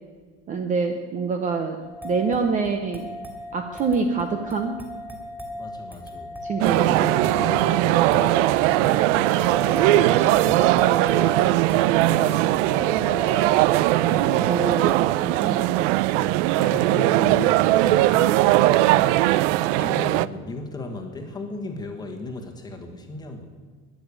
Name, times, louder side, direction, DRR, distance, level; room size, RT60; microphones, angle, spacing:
voice 1, 0.5-1.8 2.0-3.1 3.5-4.8 6.4-6.9 14.1-14.9 15.2-16.3, right 4 dB, 20° right, 5 dB, 0.7 m, -26 dB
sound 1, 1.8-15.2, left 1 dB, 5° right, 2.6 m, -35 dB
voice 2, 5.5-6.4 6.6-13.3 14.0-14.6 16.5-19.3 19.7-23.5, left 2 dB, 10° left, 4 dB, 1.3 m, -36 dB
sound 2, 6.6-20.3, right 17 dB, 85° right, 0.5 m, -20 dB
12.0 x 10.5 x 9.7 m, 1.5 s
cardioid pair, 180°, 36 cm